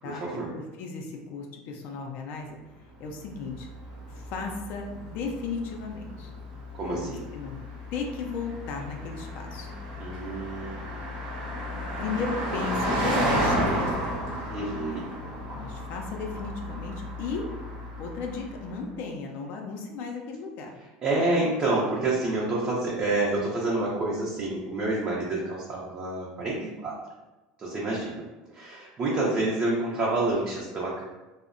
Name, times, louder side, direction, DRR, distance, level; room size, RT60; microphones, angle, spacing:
voice 1, 0.0-0.5 6.7-7.3 10.0-11.0 14.5-15.1 21.0-26.9 27.6-28.2 28.5-31.0, right 2 dB, 35° right, -5 dB, 0.5 m, -28 dB
voice 2, 0.5-3.7 4.1-6.3 6.9-7.6 7.9-9.7 12.0-14.1 15.5-17.5 18.0-20.7, left 4 dB, 60° left, 2 dB, 0.4 m, -35 dB
Car passing by, 3.0-18.7, equal, 85° right, 0.8 m, -33 dB
2.6 x 2.0 x 2.5 m, 1.1 s
supercardioid pair, 105°, 4 cm